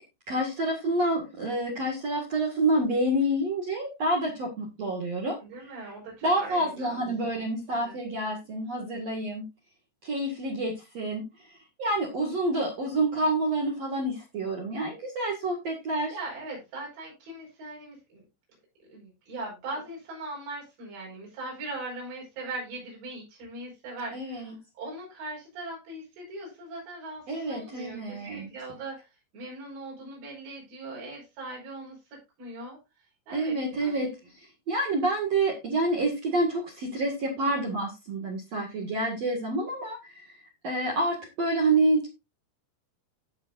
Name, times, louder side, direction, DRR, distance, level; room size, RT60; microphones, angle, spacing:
voice 1, 0.3-5.4 6.2-9.4 10.0-11.2 11.8-16.1 24.1-24.6 27.3-28.5 33.3-34.1 34.7-40.3 40.6-42.1, right 1 dB, 45° right, -1 dB, 2.6 m, -28 dB
voice 2, 5.4-7.1 7.7-8.0 16.1-18.2 18.9-24.5 24.8-29.1 29.3-32.0 32.4-32.8 33.3-34.0, right 2 dB, 75° right, -3 dB, 7.2 m, -40 dB
16.5 x 5.7 x 2.6 m, 0.25 s
omnidirectional pair, 5.0 m